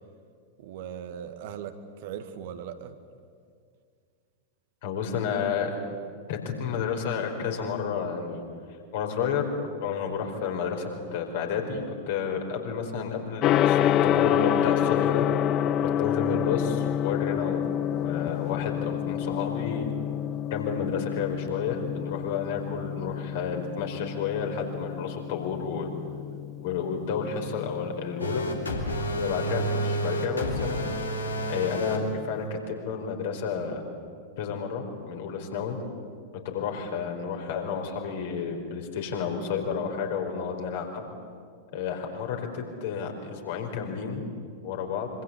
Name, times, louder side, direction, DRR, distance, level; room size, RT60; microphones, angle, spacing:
voice 1, 0.6-3.0, right 8 dB, 50° right, 8 dB, 1.9 m, -39 dB
voice 2, 4.8-5.7 6.3-8.4 8.9-9.5 9.8-15.3 15.8-19.9 20.5-25.9 26.6-28.4 29.2-30.9 31.5-33.8 34.4-35.8 36.4-41.1 41.7-44.2 44.6-45.1, left 6 dB, 55° left, 3 dB, 4.7 m, -31 dB
Gong, 13.4-32.4, left 10 dB, 35° left, 0.9 m, -29 dB
sound 1, 28.2-32.0, right 1 dB, 75° left, 3.4 m, -30 dB
25.5 x 25.5 x 8.5 m, 2.2 s
figure-of-eight pair, 90°, 0 cm